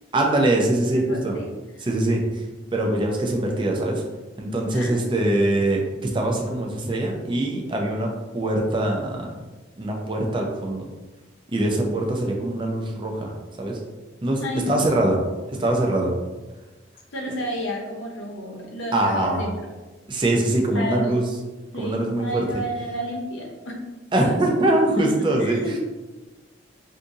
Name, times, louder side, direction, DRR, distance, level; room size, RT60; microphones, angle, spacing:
voice 1, 0.1-1.4 1.8-2.4 2.7-4.0 4.4-9.3 9.8-10.9 11.5-13.3 13.6-13.8 14.2-14.4 14.7-15.2 15.5-16.2 17.2-17.3 18.9-19.4 20.1-21.2 21.8-22.4 24.1-25.6, right 1 dB, 25° right, 0 dB, 0.5 m, -23 dB
voice 2, 0.9-1.5 1.8-1.9 4.7-5.0 14.4-15.0 17.1-19.5 20.7-21.2 21.7-23.8 24.2-24.4 25.0-25.1 25.4-25.8, equal, 70° left, -1 dB, 0.8 m, -31 dB
2.7 x 2.6 x 3.5 m, 1.2 s
head